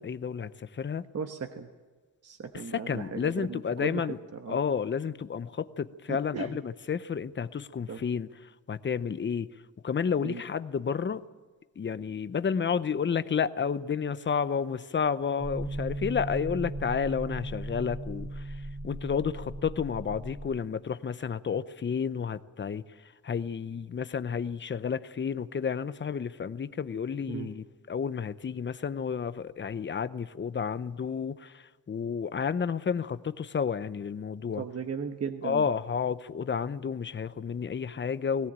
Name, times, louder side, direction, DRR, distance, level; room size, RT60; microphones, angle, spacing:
voice 1, 0.0-1.1 2.7-4.2 4.5-8.3 8.7-9.5 9.8-11.2 11.8-34.6 35.4-38.5, left 6 dB, 30° left, 14 dB, 0.7 m, -31 dB
voice 2, 1.1-1.7 2.2-4.1 4.3-4.6 6.1-6.6 7.9-8.1 10.2-10.4 27.3-27.5 34.6-35.6, right 6 dB, 40° right, 6 dB, 1.2 m, -36 dB
sound 1, 15.4-20.6, right 1 dB, ahead, 2.3 m, -37 dB
19.5 x 17.5 x 8.9 m, 1.3 s
cardioid pair, 120°, 37 cm